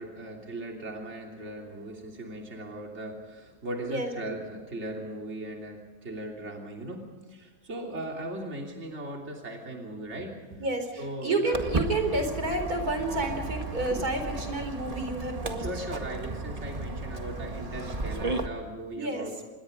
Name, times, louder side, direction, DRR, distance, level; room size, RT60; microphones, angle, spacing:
voice 1, 0.0-10.6 11.0-11.6 15.6-19.4, right 1 dB, 45° right, 1 dB, 3.4 m, -38 dB
voice 2, 10.6-15.8 19.0-19.3, right 2 dB, 70° right, 6 dB, 4.8 m, -30 dB
Walk footsteps, 11.5-18.5, right 2 dB, 25° right, 1.9 m, -34 dB
27.0 x 21.5 x 5.3 m, 1.3 s
omnidirectional pair, 1.7 m